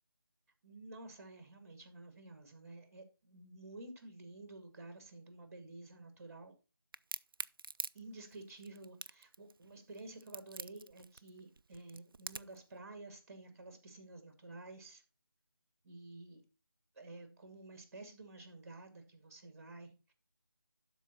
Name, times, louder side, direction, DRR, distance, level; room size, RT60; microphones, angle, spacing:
voice 1, 0.6-6.5 7.9-15.0 15.8-16.4 17.0-20.1, right 2 dB, 40° right, 7 dB, 2.3 m, -51 dB
Crack, 6.9-12.6, right 4 dB, 70° right, 0.4 m, -45 dB
12.0 x 4.6 x 4.2 m, 0.31 s
figure-of-eight pair, 160°, 12 cm